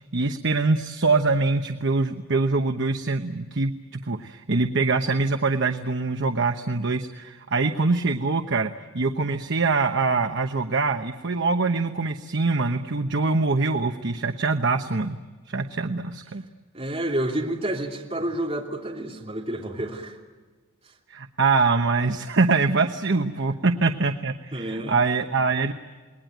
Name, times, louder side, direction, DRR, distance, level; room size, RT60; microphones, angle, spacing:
voice 1, 0.1-16.4 21.1-25.7, right 3 dB, 55° right, 7 dB, 1.0 m, -24 dB
voice 2, 16.7-20.2 23.5-23.6 24.5-25.0, right 1 dB, 30° right, -1 dB, 3.1 m, -29 dB
28.5 x 21.0 x 9.3 m, 1.3 s
head